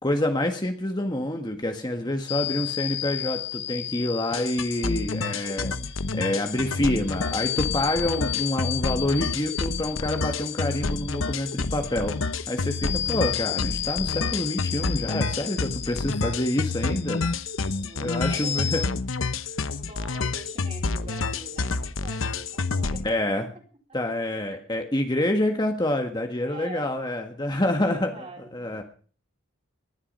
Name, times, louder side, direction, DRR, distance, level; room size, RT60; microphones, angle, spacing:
voice 1, 0.0-5.8 6.1-12.2 12.5-17.2 18.0-18.8 23.0-23.5 23.9-28.1 28.5-28.8, left 1 dB, 20° left, 4 dB, 1.6 m, -27 dB
sound 1, 2.3-18.9, left 12 dB, 55° left, 1.1 m, -34 dB
sound 2, 4.3-23.1, left 3 dB, 80° left, 1.0 m, -29 dB
voice 2, 17.7-18.9 19.7-23.0 23.4-23.5 24.4-24.7 26.4-26.9 27.6-28.8, right 2 dB, 30° right, 2 dB, 4.0 m, -44 dB
19.0 x 11.5 x 5.5 m, 0.43 s
head